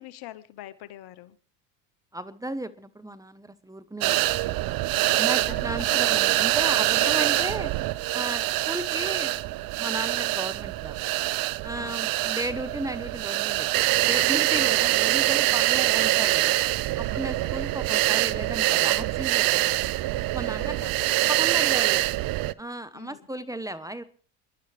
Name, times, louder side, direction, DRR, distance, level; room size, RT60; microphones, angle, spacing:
voice 1, 0.0-1.4 4.9-6.3 6.6-7.6 8.2-8.4 11.7-12.1 14.6-14.9 17.1-17.6 20.6-21.1 22.9-23.3, left 14 dB, 55° left, 15 dB, 1.1 m, -43 dB
voice 2, 2.1-4.6 5.2-7.7 8.1-9.4 9.7-11.0 11.6-13.7 14.0-16.6 17.0-19.8 20.3-20.8 21.3-22.0 22.6-24.0, right 1 dB, 5° right, 12 dB, 1.0 m, -35 dB
sound 1, 4.0-22.5, right 17 dB, 50° right, 0.6 m, -24 dB
29.5 x 11.0 x 3.4 m, 0.42 s
hypercardioid pair, 80°, 45 cm